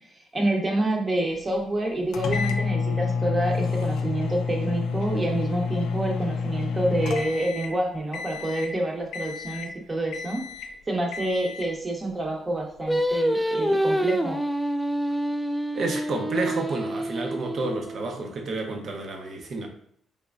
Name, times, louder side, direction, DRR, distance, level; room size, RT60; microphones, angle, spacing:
voice 1, 0.3-14.4, right 1 dB, 25° right, 1 dB, 0.9 m, -28 dB
sound 1, 2.1-7.8 8.1-8.7 9.1-9.8 10.1-10.7 11.1-11.7, left 5 dB, 80° left, 0.4 m, -29 dB
Singing, 12.9-18.2, right 1 dB, ahead, 0.3 m, -27 dB
voice 2, 15.7-19.7, right 2 dB, 55° right, 3 dB, 0.7 m, -30 dB
3.4 x 3.0 x 2.4 m, 0.65 s
cardioid pair, 90°, 0 cm